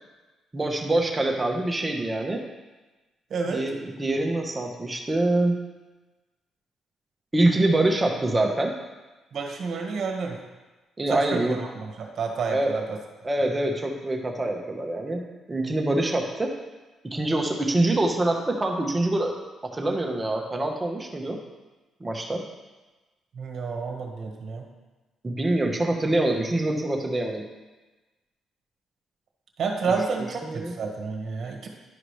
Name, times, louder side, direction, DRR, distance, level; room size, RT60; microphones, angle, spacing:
voice 1, 0.5-2.4 3.5-5.6 7.3-8.7 11.0-11.6 12.5-12.7 13.2-16.5 17.0-19.4 19.6-21.4 22.0-22.4 25.2-27.4 30.4-30.7, right 2 dB, 20° right, 1 dB, 1.2 m, -25 dB
voice 2, 3.3-3.6 9.3-10.4 11.1-13.0 23.3-24.6 29.6-31.7, right 4 dB, 60° right, 2 dB, 1.4 m, -30 dB
11.0 x 4.9 x 3.2 m, 1.2 s
cardioid pair, 90°, 0 cm